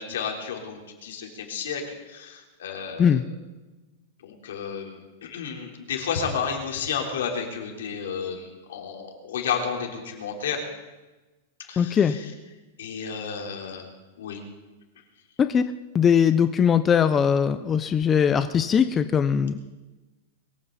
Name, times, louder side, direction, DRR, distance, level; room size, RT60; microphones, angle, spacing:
voice 1, 0.0-3.1 4.2-10.6 11.7-12.3 12.8-13.9 14.2-14.4, left 6 dB, 75° left, 1 dB, 3.9 m, -32 dB
voice 2, 11.8-12.2 15.4-15.6 15.9-19.7, left 7 dB, 15° left, 10 dB, 0.4 m, -20 dB
22.5 x 15.5 x 4.1 m, 1.1 s
supercardioid pair, 180°, 0 cm